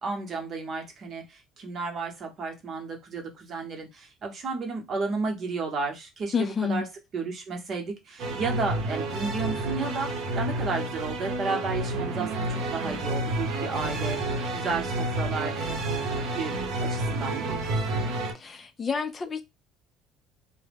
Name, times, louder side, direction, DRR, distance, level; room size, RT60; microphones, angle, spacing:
voice 1, 0.0-6.9 7.1-15.7 16.3-18.0, right 4 dB, 45° right, 0.8 m, -33 dB
voice 2, 6.3-6.8 18.3-19.4, left 5 dB, 30° left, 0.3 m, -29 dB
sound 1, 8.2-18.3, right 2 dB, 75° right, 0.7 m, -30 dB
2.2 x 2.0 x 3.3 m
supercardioid pair, 100°, 0 cm